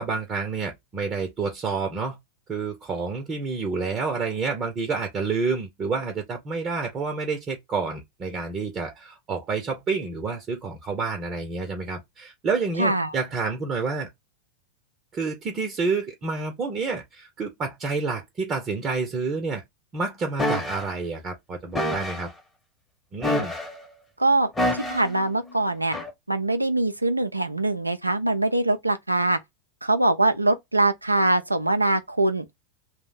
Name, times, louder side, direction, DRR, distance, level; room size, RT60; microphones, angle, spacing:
voice 1, 0.0-2.2 2.5-14.1 15.1-19.6 19.9-22.3 23.1-23.5, right 4 dB, 25° right, 0.7 m, -29 dB
voice 2, 12.8-13.1 24.2-26.0 26.3-29.4 29.8-32.4, right 2 dB, 85° right, 0.4 m, -23 dB
sound 1, 20.4-20.8 21.7-22.2 23.2-23.8 24.6-25.1 25.9-26.1, left 1 dB, 10° left, 0.9 m, -26 dB
2.6 x 2.1 x 3.9 m
figure-of-eight pair, 90°, 0 cm